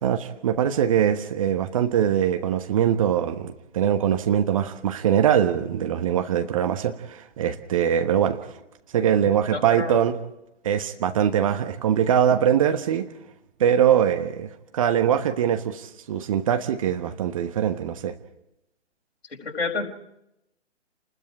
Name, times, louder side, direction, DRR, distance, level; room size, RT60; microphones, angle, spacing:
voice 1, 0.0-8.5 8.9-10.2 10.6-13.1 13.6-18.1, right 9 dB, 30° right, 7 dB, 1.2 m, -22 dB
voice 2, 9.5-10.0 19.3-19.8, left 4 dB, 60° left, 2 dB, 5.0 m, -29 dB
29.0 x 20.5 x 4.9 m, 0.84 s
figure-of-eight pair, 135°, 36 cm